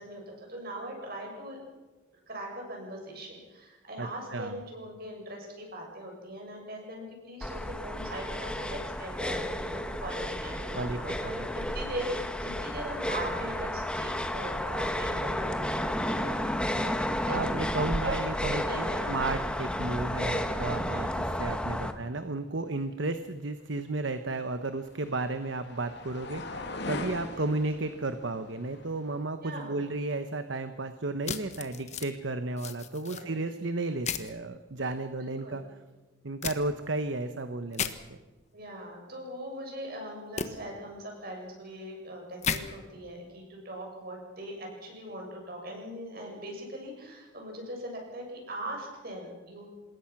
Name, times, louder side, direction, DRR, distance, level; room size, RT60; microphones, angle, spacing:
voice 1, 0.0-1.6 2.3-17.4 18.0-18.2 18.5-19.1 21.7-22.0 27.4-27.5 29.4-29.8 33.0-33.3 35.2-35.6 38.5-49.7, right 1 dB, 50° right, 1 dB, 7.4 m, -40 dB
voice 2, 4.0-4.6 10.7-11.5 17.3-35.6 36.2-38.2, right 2 dB, 65° right, 9 dB, 1.0 m, -33 dB
sound 1, 7.4-21.9, left 1 dB, 5° left, 1.2 m, -32 dB
sound 2, 24.0-29.2, left 2 dB, 55° left, 2.5 m, -41 dB
sound 3, 31.2-32.1 32.6-33.2 34.0-34.3 36.4-36.6 37.7-37.9 40.4-40.5 42.4-42.6, left 6 dB, 35° left, 1.3 m, -33 dB
26.5 x 20.5 x 6.0 m, 1.2 s
head